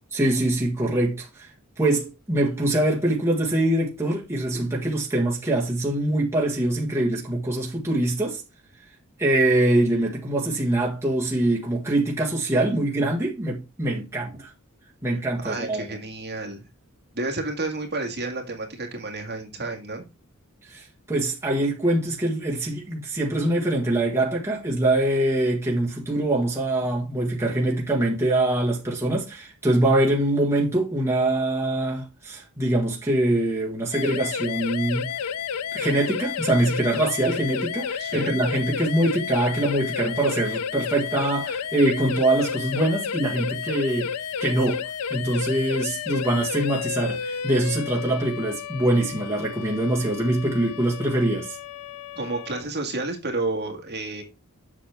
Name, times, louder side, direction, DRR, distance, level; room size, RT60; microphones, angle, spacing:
voice 1, 0.1-1.5 1.8-8.4 9.2-14.5 15.0-16.0 20.7-35.1 35.7-44.8 45.1-51.6, right 1 dB, 10° right, 1.7 m, -24 dB
voice 2, 15.4-16.7 17.1-20.0 38.0-38.4 52.1-54.2, right 2 dB, 50° right, 1.8 m, -30 dB
Siren Runout, 33.9-52.6, left 7 dB, 85° left, 0.4 m, -31 dB
7.5 x 6.5 x 3.5 m
head